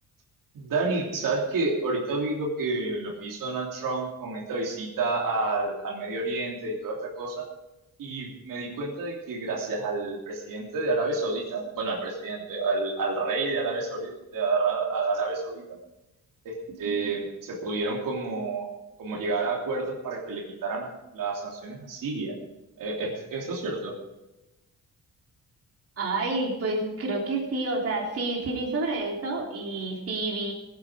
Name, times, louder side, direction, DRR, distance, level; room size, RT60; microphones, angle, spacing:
voice 1, 0.5-7.4 8.0-15.6 16.4-18.7 19.0-22.3 22.8-23.9, right 3 dB, 80° right, -2 dB, 3.2 m, -29 dB
voice 2, 26.0-30.5, right 2 dB, 45° right, -1 dB, 3.4 m, -29 dB
17.0 x 9.9 x 5.1 m, 0.96 s
cardioid pair, 125°, 33 cm